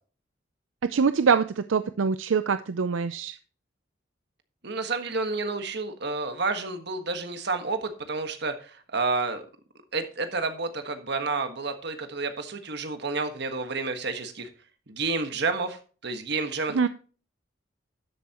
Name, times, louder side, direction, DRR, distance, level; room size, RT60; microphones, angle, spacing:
voice 1, 0.9-3.3 16.7-16.9, right 5 dB, 85° right, 12 dB, 0.5 m, -24 dB
voice 2, 4.6-9.4 9.9-14.5 14.9-16.9, right 3 dB, 60° right, 7 dB, 1.5 m, -30 dB
12.5 x 8.3 x 3.0 m, 0.38 s
head